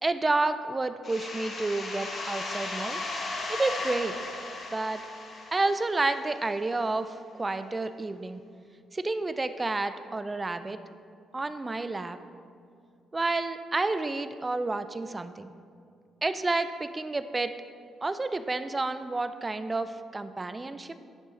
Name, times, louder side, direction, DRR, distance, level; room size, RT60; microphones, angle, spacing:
voice 1, 0.0-3.0 3.3-4.2 4.7-5.0 5.5-8.4 8.9-10.8 11.3-12.2 13.1-15.5 16.2-17.5 18.0-20.9, right 2 dB, 20° right, 11 dB, 0.3 m, -30 dB
sound 1, 1.0-6.5, left 2 dB, 50° left, 1.2 m, -36 dB
10.5 x 3.8 x 4.2 m, 2.3 s
cardioid pair, 90°, 0 cm